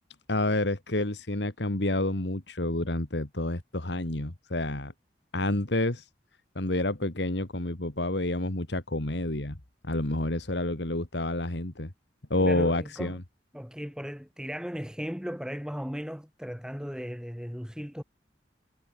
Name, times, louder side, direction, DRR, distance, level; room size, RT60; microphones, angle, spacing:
voice 1, 0.3-4.9 5.3-6.1 6.6-9.6 9.8-11.9 12.3-13.2, left 1 dB, 75° left, 2.3 m, -29 dB
voice 2, 12.4-13.2 13.5-18.0, equal, 5° right, 6.4 m, -36 dB
head